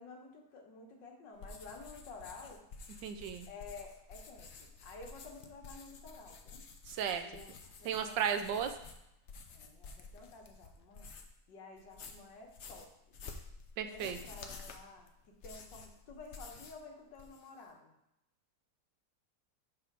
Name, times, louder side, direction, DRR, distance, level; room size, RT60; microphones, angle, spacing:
voice 1, 0.0-2.6 3.5-6.7 7.2-8.6 9.5-11.1 11.5-13.2 13.8-15.1 15.4-17.9, left 3 dB, 80° left, 1 dB, 1.9 m, -52 dB
sound 1, 1.4-11.4 11.8-16.8 17.1-17.7, left 4 dB, 60° left, 0.7 m, -51 dB
voice 2, 3.0-3.5 6.9-7.2 7.8-8.7 13.8-14.2, right 8 dB, 80° right, 8 dB, 1.3 m, -34 dB
7.2 x 3.4 x 6.0 m, 0.82 s
omnidirectional pair, 2.0 m